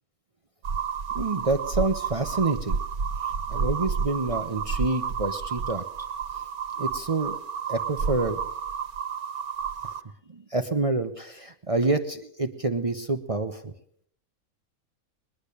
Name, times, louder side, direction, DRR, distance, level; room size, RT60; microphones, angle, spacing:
sound 1, 0.6-10.0, right 6 dB, 85° right, 1.5 m, -31 dB
voice 1, 1.1-2.8 3.2-5.8 6.3-6.4 6.8-7.4 7.7-8.4 10.3-13.7, right 3 dB, 35° right, 8 dB, 0.6 m, -27 dB
21.5 x 10.0 x 6.7 m, 0.65 s
omnidirectional pair, 1.5 m